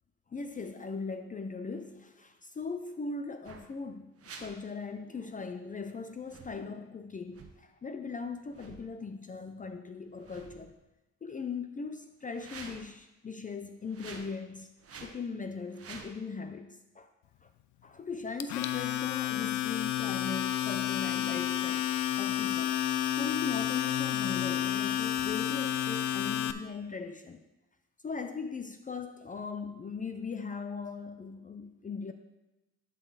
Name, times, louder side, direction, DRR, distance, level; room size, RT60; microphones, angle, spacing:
voice 1, 0.3-10.7 11.2-14.7 15.0-17.1 17.4-17.5 17.8-22.8 23.2-27.4 28.0-32.1, left 4 dB, 25° left, 7 dB, 0.5 m, -39 dB
sound 1, 3.4-3.7 4.2-4.5 6.2-6.6 7.3-7.5 8.5-8.9 10.0-10.8 12.2-12.9 13.8-14.3 14.8-15.2 15.7-16.1, right 4 dB, 50° right, 1.1 m, -48 dB
Domestic sounds home sounds, 18.4-26.5, left 11 dB, 75° left, 0.5 m, -30 dB
11.5 x 4.1 x 4.0 m, 1.0 s
cardioid pair, 90°, 30 cm